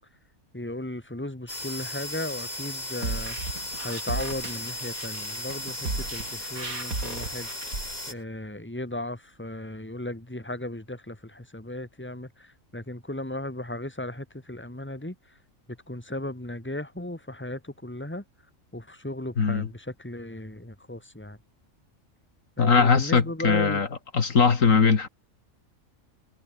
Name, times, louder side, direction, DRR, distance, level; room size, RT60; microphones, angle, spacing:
voice 1, 0.5-3.4 3.8-7.5 8.1-15.1 15.9-18.2 18.7-21.4 22.6-23.8, left 1 dB, 10° left, 2.9 m, -36 dB
sound 1, 1.5-8.1, left 1 dB, 30° left, 5.9 m, -36 dB
sound 2, 2.9-8.1, right 3 dB, 80° right, 4.8 m, -35 dB
voice 2, 19.4-19.7 22.6-23.9 24.1-25.1, left 5 dB, 70° left, 2.2 m, -20 dB
omnidirectional pair, 1.4 m